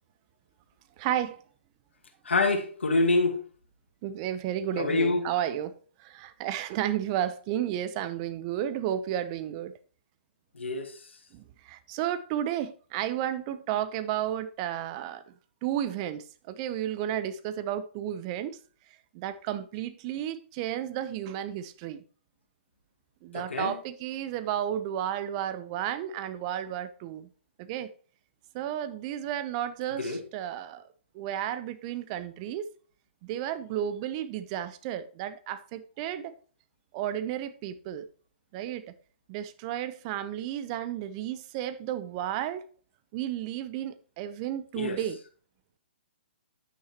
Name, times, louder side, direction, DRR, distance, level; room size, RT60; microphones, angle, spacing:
voice 1, 1.0-1.4 4.0-9.8 11.3-15.2 15.6-18.6 19.1-22.0 23.2-27.3 27.6-27.9 28.5-30.8 31.1-32.6 33.2-36.3 36.9-38.0 38.5-38.8 39.3-42.6 43.1-45.2, right 11 dB, 35° right, 0.8 m, -32 dB
voice 2, 2.3-3.4 4.8-5.2 10.6-10.9 23.3-23.7 30.0-30.2 44.8-45.0, left 3 dB, 80° left, 2.0 m, -26 dB
9.8 x 8.9 x 3.0 m
hypercardioid pair, 135°, 6 cm